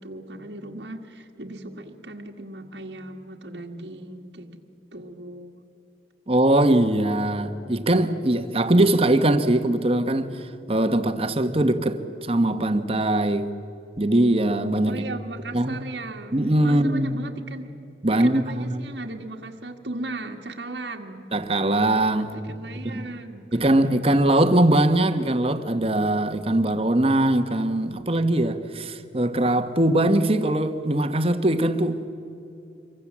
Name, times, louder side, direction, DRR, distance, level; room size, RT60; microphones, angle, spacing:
voice 1, 0.0-4.6 4.9-5.6 14.8-16.4 16.6-17.7 18.2-21.3 22.2-23.5, right 2 dB, 80° right, 1.9 m, -37 dB
voice 2, 6.3-13.5 14.0-15.0 15.5-15.8 16.3-17.1 18.0-18.8 21.3-22.4 22.8-23.1 23.5-32.0, right 1 dB, 35° right, 1.3 m, -21 dB
27.0 x 23.5 x 7.5 m
head